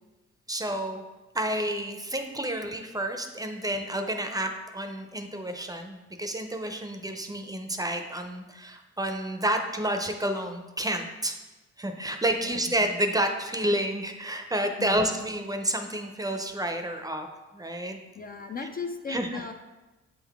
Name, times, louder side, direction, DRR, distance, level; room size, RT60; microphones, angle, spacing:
voice 1, 0.5-1.0 1.3-11.4 11.8-18.0 19.1-19.4, right 1 dB, 10° right, 5 dB, 0.6 m, -30 dB
voice 2, 18.2-19.5, left 4 dB, 30° left, 5 dB, 0.4 m, -36 dB
7.8 x 3.8 x 3.5 m, 1.1 s
cardioid pair, 90°, 30 cm